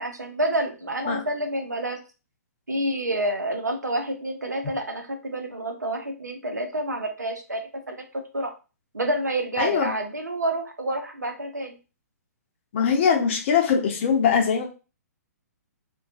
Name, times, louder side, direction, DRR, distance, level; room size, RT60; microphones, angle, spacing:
voice 1, 0.0-2.0 2.7-8.5 8.9-11.8, right 1 dB, 90° right, 5 dB, 0.6 m, -28 dB
voice 2, 9.6-9.9 12.7-14.7, left 6 dB, 45° left, 3 dB, 0.7 m, -22 dB
2.4 x 2.2 x 2.4 m, 0.31 s
figure-of-eight pair, 125°, 9 cm